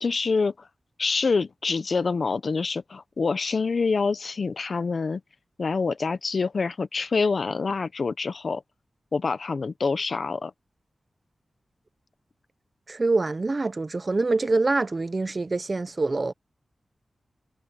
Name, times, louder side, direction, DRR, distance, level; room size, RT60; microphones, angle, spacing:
voice 1, 0.0-0.7 1.0-5.2 5.6-8.6 9.1-10.5, left 4 dB, 60° left, 1.1 m, -26 dB
voice 2, 12.9-16.3, right 3 dB, 35° right, 0.8 m, -25 dB
wide cardioid pair, 95°, 0 cm